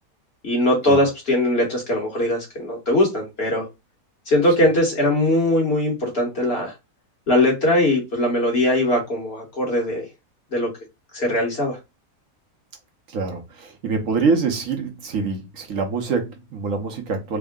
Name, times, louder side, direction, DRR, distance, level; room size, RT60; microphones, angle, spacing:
voice 1, 0.4-3.7 4.3-6.7 7.3-10.1 10.5-10.7 11.1-11.8, left 1 dB, 45° left, 1.4 m, -20 dB
voice 2, 13.1-17.4, right 4 dB, 70° right, 1.2 m, -25 dB
3.6 x 2.1 x 3.5 m
omnidirectional pair, 1.5 m